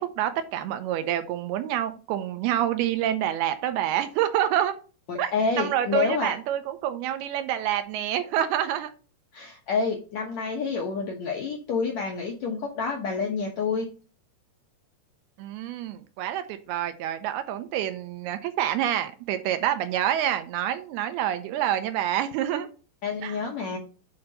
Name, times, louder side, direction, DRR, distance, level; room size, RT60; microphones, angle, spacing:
voice 1, 0.0-4.7 5.2-8.9 15.4-22.7 23.2-23.4, right 11 dB, 80° right, 9 dB, 2.6 m, -27 dB
voice 2, 5.1-6.3 9.3-13.9 23.0-23.8, left 5 dB, 70° left, 1 dB, 1.7 m, -28 dB
8.8 x 4.0 x 5.4 m, 0.36 s
omnidirectional pair, 4.8 m